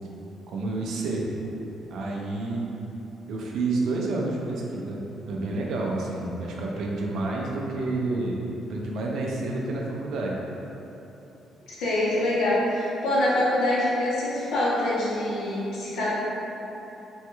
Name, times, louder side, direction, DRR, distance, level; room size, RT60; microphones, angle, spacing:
voice 1, 0.5-1.3 1.9-2.6 3.3-8.4 8.7-10.4, right 2 dB, 60° right, -2 dB, 0.4 m, -29 dB
voice 2, 11.7-16.1, left 1 dB, 90° left, -7 dB, 0.8 m, -25 dB
3.1 x 2.2 x 3.0 m, 3.0 s
cardioid pair, 170°, 0 cm